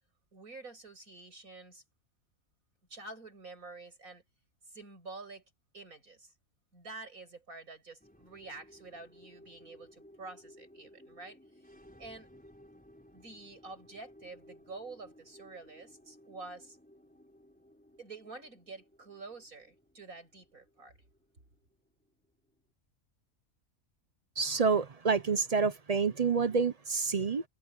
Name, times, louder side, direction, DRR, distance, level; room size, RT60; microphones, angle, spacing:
voice 1, 0.3-1.8 2.9-4.2 4.7-5.4 5.7-6.3 6.7-11.4 12.0-12.3 13.1-16.8 18.0-20.9, right 3 dB, 80° right, 7.4 m, -48 dB
sound 1, 8.0-22.6, equal, 5° left, 4.3 m, -59 dB
voice 2, 24.4-27.4, right 5 dB, 40° right, 0.5 m, -28 dB
omnidirectional pair, 1.5 m